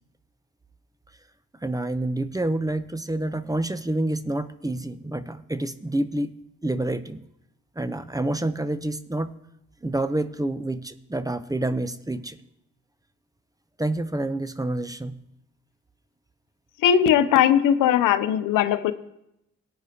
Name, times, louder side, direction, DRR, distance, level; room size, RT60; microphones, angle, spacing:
voice 1, 1.6-6.3 6.6-7.2 7.8-9.3 9.8-12.4 13.8-15.2, right 1 dB, 10° right, 12 dB, 0.7 m, -28 dB
voice 2, 16.8-18.9, left 9 dB, 85° left, 12 dB, 0.7 m, -19 dB
18.0 x 9.4 x 2.9 m, 0.83 s
supercardioid pair, 55°, 31 cm